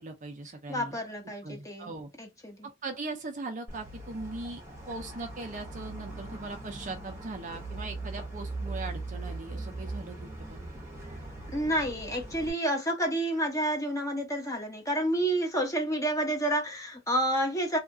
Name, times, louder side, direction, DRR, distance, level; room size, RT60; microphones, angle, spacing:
voice 1, 0.0-1.0 1.4-2.1 2.6-4.6 4.9-10.6, right 3 dB, 40° right, 0.6 m, -40 dB
voice 2, 0.7-1.9 2.2-2.6 11.5-17.8, right 1 dB, 15° left, 1.0 m, -29 dB
sound 1, 3.7-12.5, right 2 dB, 15° right, 0.9 m, -40 dB
2.8 x 2.4 x 2.6 m
head